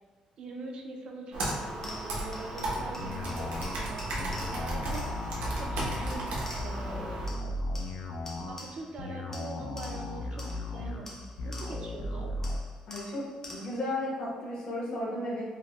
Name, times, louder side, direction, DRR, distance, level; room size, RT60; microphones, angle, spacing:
voice 1, 0.4-7.5 8.5-12.3, right 2 dB, 45° right, 1 dB, 0.4 m, -43 dB
Computer keyboard, 1.3-7.3, right 1 dB, 90° right, 0.8 m, -34 dB
sound 1, 1.4-7.0 7.3-9.0 9.3-12.0 12.4-13.9, left 2 dB, 20° left, 0.5 m, -48 dB
sound 2, 3.0-12.6, left 2 dB, 75° left, 0.4 m, -36 dB
voice 2, 12.9-13.2 13.5-15.4, left 1 dB, 45° left, -5 dB, 0.9 m, -34 dB
4.6 x 2.1 x 2.3 m, 1.4 s
cardioid pair, 165°, 2 cm